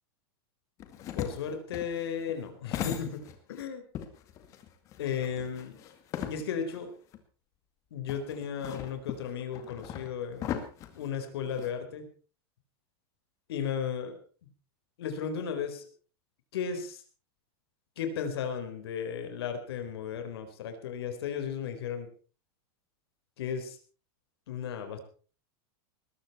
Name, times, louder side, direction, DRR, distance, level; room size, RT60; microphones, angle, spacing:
sound 1, 0.8-3.6 3.9-6.8 7.1-7.2 8.1-11.7, left 10 dB, 25° left, 2.1 m, -39 dB
voice 1, 1.2-3.2 3.5-3.8 5.0-5.8 6.3-6.9 7.9-10.6 11.0-12.1 13.5-14.2 15.0-15.9 16.5-17.0 18.0-22.1 23.4-23.8 24.5-25.0, left 7 dB, 80° left, 7 dB, 4.4 m, -35 dB
20.0 x 14.5 x 4.4 m, 0.39 s
supercardioid pair, 180°, 13 cm